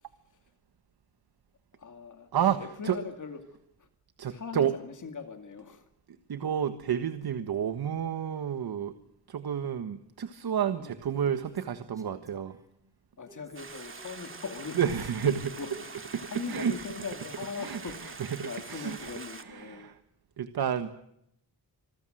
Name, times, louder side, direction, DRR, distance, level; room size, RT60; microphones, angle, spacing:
voice 1, 1.7-2.3 2.6-3.9 4.3-5.9 10.7-10.9 13.2-15.0 15.2-19.9, left 5 dB, 45° left, 7 dB, 2.4 m, -41 dB
voice 2, 2.3-3.0 4.2-4.7 6.3-8.9 9.3-12.6 14.7-15.6 16.1-16.2 16.5-16.7 17.6-19.1 19.4-20.0 20.4-20.9, right 8 dB, 65° right, 9 dB, 1.5 m, -30 dB
Female speech woman speaking, 10.9-12.8 13.1-16.9, equal, 10° right, 4.3 m, -58 dB
Stream, 13.5-19.4, right 4 dB, 30° right, 2.3 m, -44 dB
27.0 x 20.0 x 7.8 m, 0.77 s
wide cardioid pair, 140°, 41 cm